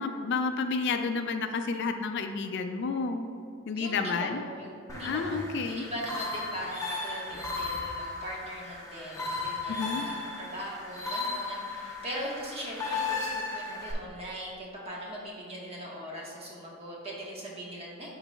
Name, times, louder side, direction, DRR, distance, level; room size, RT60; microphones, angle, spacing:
voice 1, 0.0-3.3 3.7-4.4 5.0-5.9 9.7-10.0, left 4 dB, 55° left, 7 dB, 0.4 m, -30 dB
voice 2, 3.7-18.1, equal, 30° right, -4 dB, 1.3 m, -40 dB
sound 1, 4.9-13.9, left 3 dB, 15° left, 0.8 m, -35 dB
11.0 x 3.9 x 2.3 m, 2.4 s
head